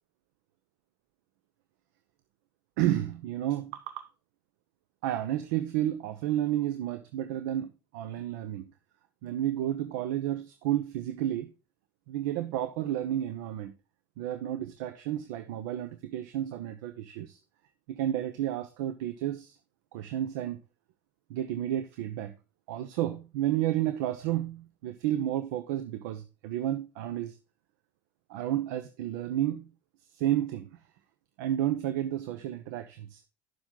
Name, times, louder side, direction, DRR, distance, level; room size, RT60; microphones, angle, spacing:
voice 1, 2.8-4.1 5.0-8.6 9.2-11.5 12.1-13.7 14.2-17.4 17.9-19.6 19.9-20.6 21.3-22.3 22.7-27.3 28.3-29.7 30.2-30.7 31.4-33.2, right 12 dB, 70° right, 0.8 m, -31 dB
10.5 x 7.1 x 3.8 m
hypercardioid pair, 65°, 10 cm